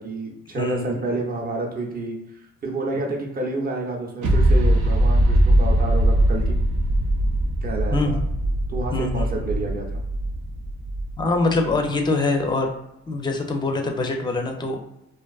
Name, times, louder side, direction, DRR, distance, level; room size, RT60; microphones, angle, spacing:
voice 1, 0.0-2.2 2.6-6.5 7.6-8.2 8.7-9.9, right 2 dB, 30° right, 0 dB, 0.6 m, -29 dB
voice 2, 0.5-1.0 2.9-3.1 7.9-8.2 8.9-9.3 11.2-12.7 13.1-14.9, left 3 dB, 15° left, 3 dB, 0.4 m, -24 dB
sound 1, 4.2-11.7, right 1 dB, 80° right, 0.5 m, -21 dB
2.5 x 2.3 x 2.3 m, 0.87 s
cardioid pair, 90°, 30 cm